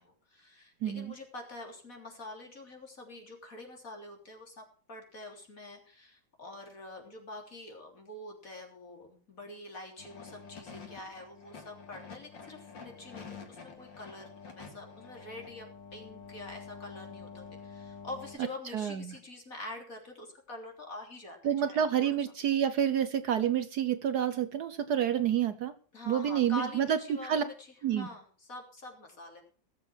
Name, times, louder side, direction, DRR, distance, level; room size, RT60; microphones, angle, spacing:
voice 1, 0.0-14.3 14.6-22.2 25.9-27.7 27.9-29.4, left 2 dB, 45° left, 1 dB, 3.9 m, -46 dB
voice 2, 0.8-1.1 18.7-19.2 21.4-25.7 26.1-27.0 27.2-27.4 27.8-28.1, right 9 dB, 65° right, 12 dB, 1.3 m, -28 dB
sound 1, 10.0-18.4, left 6 dB, 75° left, 3.0 m, -48 dB
19.0 x 7.4 x 6.3 m, 0.41 s
omnidirectional pair, 2.0 m